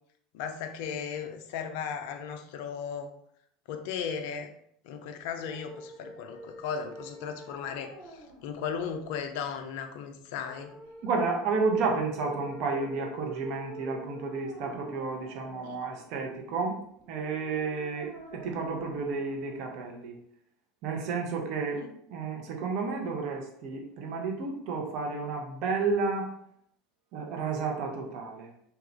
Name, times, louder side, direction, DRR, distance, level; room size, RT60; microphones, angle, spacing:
voice 1, 0.3-3.1 3.7-4.5 4.8-10.7 15.6-15.8 21.7-21.9, left 7 dB, 60° left, 6 dB, 0.4 m, -36 dB
sound 1, 5.2-20.2, equal, 80° right, 1.3 m, -48 dB
voice 2, 11.0-16.8 17.1-20.1 20.8-21.8 22.1-26.3 27.1-28.5, right 4 dB, 55° right, 1 dB, 0.7 m, -31 dB
2.9 x 2.3 x 3.2 m, 0.70 s
figure-of-eight pair, 75°, 0 cm